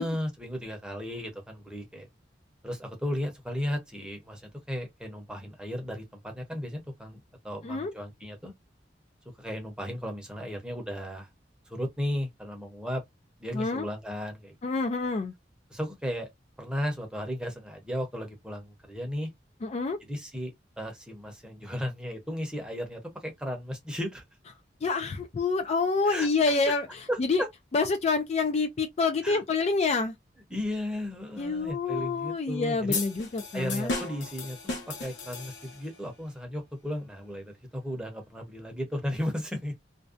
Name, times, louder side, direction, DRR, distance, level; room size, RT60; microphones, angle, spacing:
voice 1, 0.0-2.1 2.6-4.4 4.7-8.5 9.4-11.3 11.7-13.0 13.4-14.5 15.7-16.3 16.6-19.3 20.0-24.2 26.0-26.7 27.1-27.5 29.2-29.4 30.5-33.0 33.5-39.7, equal, 5° right, 0.7 m, -35 dB
voice 2, 13.5-13.9 14.6-15.3 19.6-20.0 24.8-26.9 27.2-27.4 27.7-30.1 31.4-34.0, left 4 dB, 35° left, 0.3 m, -27 dB
sound 1, 32.9-36.0, left 3 dB, 70° left, 1.0 m, -35 dB
2.5 x 2.1 x 2.3 m
head